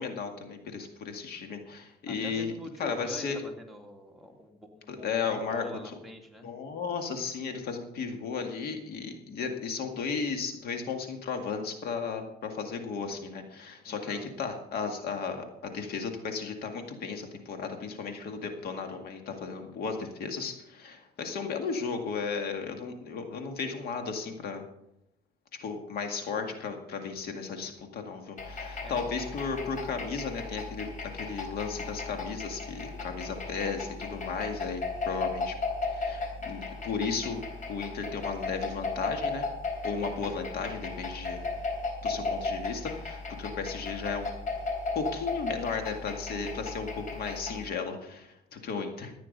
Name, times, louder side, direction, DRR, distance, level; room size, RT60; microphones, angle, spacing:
voice 1, 0.0-2.5 2.8-3.4 4.9-5.6 6.4-24.6 25.6-35.6 35.8-37.4 37.7-39.5 39.8-41.5 42.0-44.3 44.9-49.1, left 5 dB, 65° left, 5 dB, 2.0 m, -35 dB
voice 2, 2.1-6.5 13.9-14.3 21.2-21.4 28.7-29.0, equal, ahead, 3 dB, 2.3 m, -45 dB
sound 1, 28.4-47.7, left 3 dB, 50° left, 3.7 m, -36 dB
14.5 x 9.3 x 5.4 m, 0.80 s
cardioid pair, 110°, 17 cm